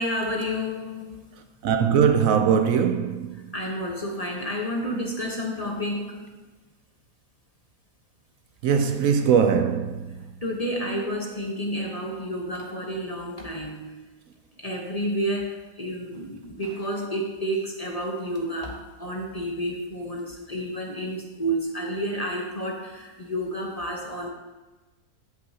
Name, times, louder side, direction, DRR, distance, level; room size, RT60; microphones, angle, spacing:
voice 1, 0.0-1.3 3.5-6.3 10.4-14.0 14.6-24.3, equal, 30° left, 1.0 m, -30 dB
voice 2, 1.6-3.4 8.6-10.1, right 7 dB, 70° right, 1.0 m, -21 dB
13.0 x 6.4 x 2.8 m
omnidirectional pair, 1.6 m